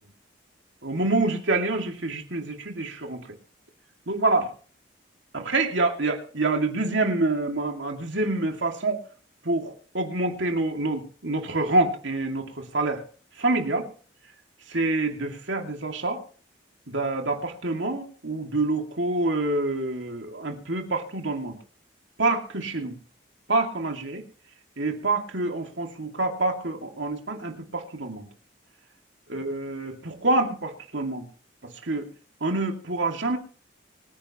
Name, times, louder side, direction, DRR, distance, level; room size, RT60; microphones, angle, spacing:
voice 1, 0.8-3.3 4.1-4.5 5.3-9.0 9.4-13.0 13.3-13.9 14.7-16.2 16.9-21.6 22.2-23.0 23.5-24.2 24.8-28.3 29.3-31.3 31.6-32.1 32.4-33.4, right 2 dB, 70° right, 3 dB, 2.4 m, -27 dB
24.5 x 9.8 x 3.0 m, 0.42 s
head